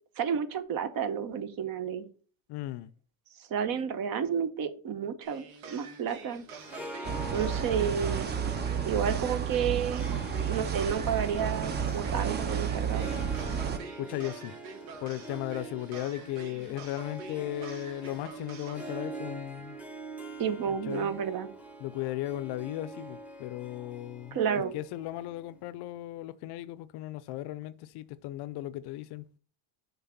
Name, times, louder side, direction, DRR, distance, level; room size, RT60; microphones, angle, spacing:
voice 1, 0.2-2.1 3.5-6.4 7.3-8.3 8.8-10.0 10.5-13.1 20.4-21.5 24.3-24.7, right 7 dB, 45° right, 0.8 m, -31 dB
voice 2, 2.5-2.9 14.0-14.6 15.0-19.8 20.7-21.1 21.8-29.3, left 15 dB, 55° left, 0.5 m, -36 dB
sound 1, 5.2-18.9, right 5 dB, 80° right, 1.5 m, -47 dB
Harp, 6.5-25.8, right 2 dB, 5° right, 0.9 m, -44 dB
sound 2, 7.0-13.8, right 7 dB, 25° right, 0.5 m, -31 dB
5.6 x 3.6 x 5.7 m
cardioid pair, 130°, 48 cm